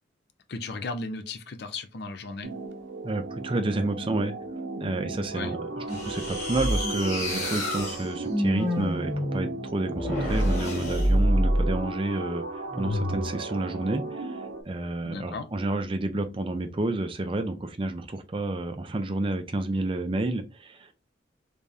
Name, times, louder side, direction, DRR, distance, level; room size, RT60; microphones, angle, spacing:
voice 1, 0.5-2.5 5.3-5.5 15.0-15.5, left 3 dB, 55° left, 0.5 m, -35 dB
sound 1, 2.4-14.6, right 3 dB, 70° right, 0.6 m, -36 dB
voice 2, 3.0-4.3 4.8-20.9, right 2 dB, 25° right, 0.5 m, -30 dB
sound 2, 5.9-11.8 12.7-13.4, equal, 40° left, 1.6 m, -27 dB
3.4 x 3.4 x 2.7 m
head